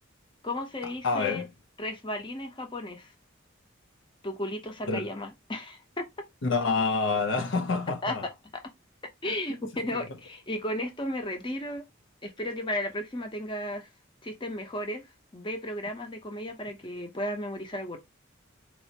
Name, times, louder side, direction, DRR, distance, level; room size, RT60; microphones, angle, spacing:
voice 1, 0.4-1.4 1.8-3.1 4.2-6.1 8.0-8.2 9.2-11.8 12.2-13.9 14.2-15.0 15.3-18.0, left 1 dB, 25° left, 0.8 m, -34 dB
voice 2, 1.0-1.5 4.9-5.1 6.4-8.3, left 4 dB, 60° left, 0.6 m, -27 dB
4.3 x 2.7 x 2.8 m
head